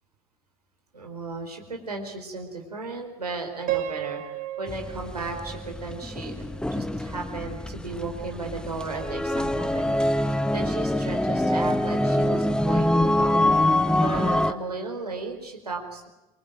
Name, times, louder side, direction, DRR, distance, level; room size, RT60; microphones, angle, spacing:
voice 1, 0.9-9.9 10.2-13.4 14.0-16.1, right 3 dB, 85° right, 2 dB, 4.8 m, -35 dB
Piano, 3.7-6.7, right 13 dB, 45° right, 2.7 m, -34 dB
sound 1, 4.7-14.5, left 1 dB, 5° left, 1.6 m, -25 dB
27.0 x 24.5 x 9.2 m, 1.0 s
figure-of-eight pair, 65°, 19 cm